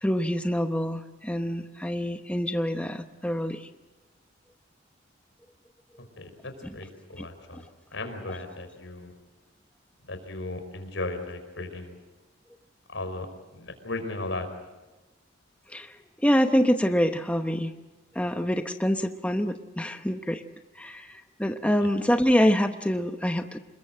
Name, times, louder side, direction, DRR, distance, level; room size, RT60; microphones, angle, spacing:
voice 1, 0.0-3.7 6.6-6.8 7.2-7.3 7.5-7.6 8.3-8.4 15.7-17.7 18.1-20.4 20.7-23.6, equal, 5° left, 6 dB, 0.8 m, -26 dB
voice 2, 6.2-7.6 7.9-9.1 10.1-12.0 12.9-13.3 13.5-14.5, left 2 dB, 75° left, 7 dB, 5.2 m, -36 dB
27.5 x 21.5 x 7.8 m, 1.1 s
head